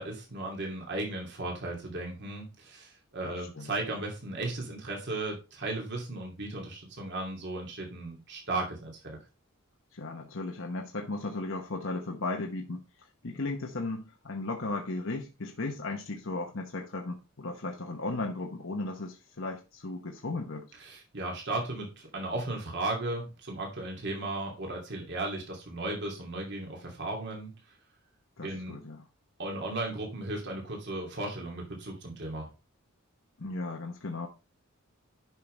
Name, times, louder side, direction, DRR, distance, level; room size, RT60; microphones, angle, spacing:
voice 1, 0.0-9.2 20.8-27.5 28.4-28.8 29.4-32.5, right 2 dB, 50° right, 2.7 m, -36 dB
voice 2, 3.2-3.7 9.9-20.7 28.4-29.1 33.4-34.3, left 2 dB, 60° left, 1.1 m, -36 dB
11.0 x 5.7 x 3.3 m
head